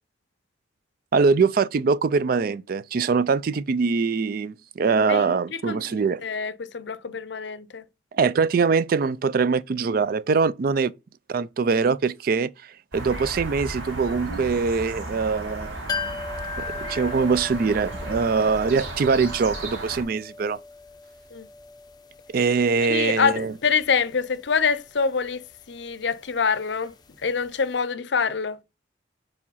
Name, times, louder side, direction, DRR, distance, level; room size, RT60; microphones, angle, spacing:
voice 1, 1.1-6.2 8.1-10.9 11.3-12.5 12.9-16.2 16.6-20.6 22.3-23.5, right 5 dB, 50° right, 0.3 m, -23 dB
voice 2, 5.1-7.8 21.3-21.5 22.9-25.4 25.7-26.9 27.2-28.6, left 5 dB, 65° left, 0.6 m, -26 dB
sound 1, 12.9-20.0, right 2 dB, 90° right, 3.4 m, -35 dB
sound 2, 15.9-27.5 27.8-27.9, left 4 dB, 20° left, 0.5 m, -39 dB
4.9 x 4.8 x 5.5 m
head